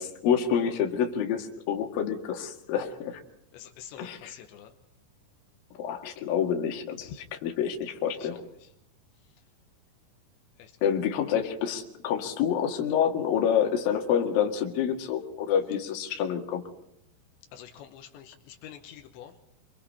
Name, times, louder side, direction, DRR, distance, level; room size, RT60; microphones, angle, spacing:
voice 1, 0.0-3.2 4.0-4.3 5.8-7.1 7.4-8.4 10.8-16.6, left 8 dB, 60° left, 3 dB, 3.4 m, -27 dB
voice 2, 3.5-4.7 7.1-7.2 8.1-8.7 10.6-10.7 17.5-19.4, left 9 dB, 80° left, 5 dB, 3.4 m, -47 dB
26.5 x 24.5 x 4.3 m, 0.74 s
omnidirectional pair, 5.1 m